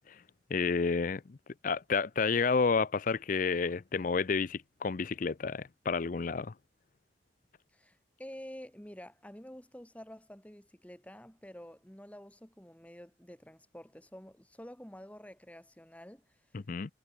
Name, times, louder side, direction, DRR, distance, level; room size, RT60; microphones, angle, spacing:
voice 1, 0.5-1.4 1.6-6.5 16.5-16.9, left 4 dB, 45° left, 0.5 m, -30 dB
voice 2, 7.7-16.4, equal, 5° left, 1.4 m, -49 dB
head